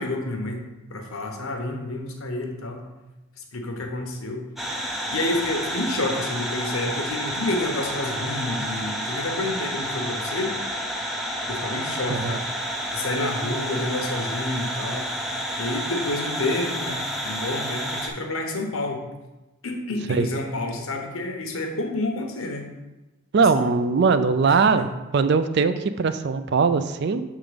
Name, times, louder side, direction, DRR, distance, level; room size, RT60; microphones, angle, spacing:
voice 1, 0.0-2.8 3.5-4.4 5.1-10.5 11.5-12.4 12.9-15.1 15.6-19.0 19.6-22.6 23.5-23.7 24.5-24.9, left 2 dB, 75° left, 3 dB, 1.0 m, -29 dB
sound 1, 4.6-18.1, equal, ahead, 0.6 m, -30 dB
voice 2, 23.3-24.9 25.1-27.2, right 5 dB, 50° right, 11 dB, 0.3 m, -20 dB
6.9 x 3.7 x 5.0 m, 1.0 s
head